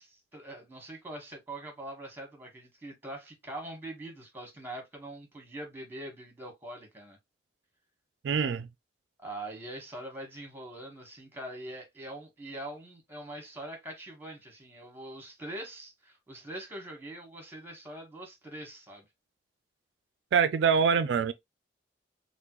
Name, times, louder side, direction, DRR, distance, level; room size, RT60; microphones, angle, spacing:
voice 1, 0.0-7.2 9.2-19.1 20.8-20.9, right 1 dB, 15° right, 1.2 m, -43 dB
voice 2, 8.2-8.7 20.3-21.3, right 6 dB, 90° right, 0.3 m, -24 dB
3.5 x 2.1 x 2.9 m
head